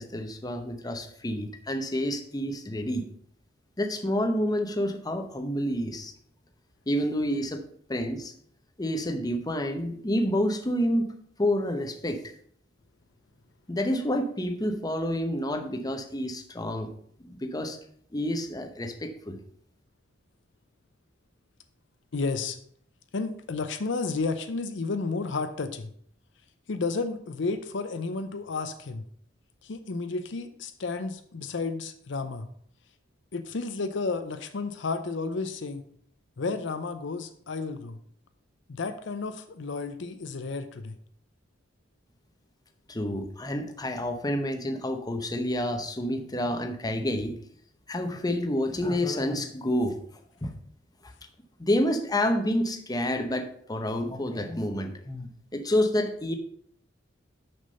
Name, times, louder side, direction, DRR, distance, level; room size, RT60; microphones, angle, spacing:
voice 1, 0.0-3.0 3.8-6.1 6.9-7.6 7.9-8.3 8.8-11.1 11.4-12.3 13.7-16.9 17.2-17.8 18.1-19.4 42.9-47.3 47.9-50.0 50.4-50.6 51.6-56.3, left 1 dB, 20° left, 6 dB, 0.8 m, -29 dB
voice 2, 22.1-22.6 23.1-25.9 26.7-29.0 29.6-32.5 33.3-35.8 36.4-38.0 38.7-40.9, left 4 dB, 70° left, 9 dB, 0.6 m, -32 dB
6.3 x 6.0 x 5.4 m, 0.62 s
head